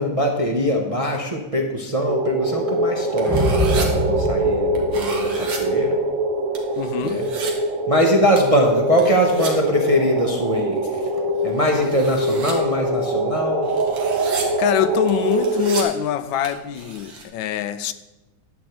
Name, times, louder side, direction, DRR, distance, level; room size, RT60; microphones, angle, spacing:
voice 1, 0.0-6.0 7.0-7.3 7.9-11.1 11.4-13.7, equal, 30° right, 0.6 m, -22 dB
sound 1, 2.0-15.8, right 2 dB, 60° right, 0.9 m, -23 dB
sound 2, 3.2-5.7, left 2 dB, ahead, 1.3 m, -25 dB
sound 3, 3.2-3.9 4.8-5.6 6.5-7.5 8.4-8.6 9.0-9.5 11.4-12.5 13.4-14.4 15.1-15.8 16.4-16.5 16.7-17.2, right 4 dB, 75° right, 2.2 m, -33 dB
voice 2, 6.8-7.3 14.3-17.9, left 10 dB, 85° left, 1.4 m, -24 dB
11.0 x 4.5 x 7.9 m
omnidirectional pair, 2.1 m